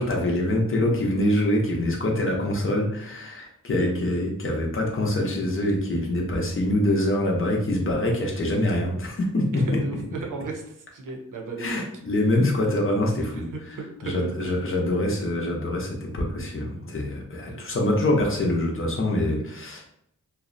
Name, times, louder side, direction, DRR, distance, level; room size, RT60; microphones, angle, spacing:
voice 1, 0.0-10.0 11.6-19.9, left 1 dB, 40° left, -1 dB, 0.6 m, -25 dB
voice 2, 9.5-11.9 13.1-13.2 13.5-14.4 17.5-17.6, right 3 dB, 75° right, 1 dB, 0.6 m, -35 dB
2.6 x 2.0 x 2.5 m, 0.72 s
wide cardioid pair, 110°, 32 cm